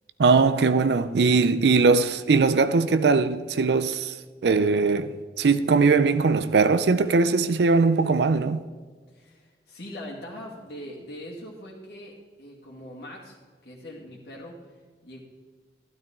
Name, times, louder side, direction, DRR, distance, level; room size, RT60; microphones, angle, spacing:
voice 1, 0.2-4.2 4.4-8.6, right 4 dB, 70° right, 0.5 m, -20 dB
voice 2, 9.1-13.4 13.6-14.7 15.0-15.2, left 1 dB, 60° left, 2.2 m, -41 dB
13.0 x 12.0 x 3.7 m
head